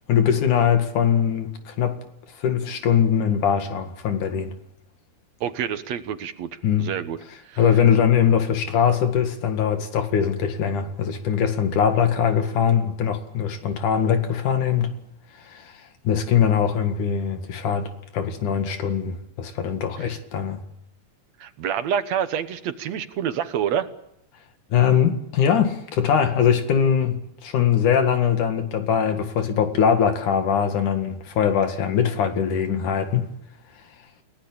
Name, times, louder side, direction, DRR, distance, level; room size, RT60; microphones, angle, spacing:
voice 1, 0.1-2.0 2.4-4.5 6.6-6.9 7.6-15.0 15.4-15.7 16.1-20.6 24.7-33.3, left 8 dB, 90° left, 3.5 m, -21 dB
voice 2, 5.4-6.5 6.8-7.2 7.5-7.6 20.0-20.1 21.4-23.9, right 9 dB, 65° right, 2.2 m, -27 dB
29.5 x 17.5 x 8.7 m
omnidirectional pair, 3.4 m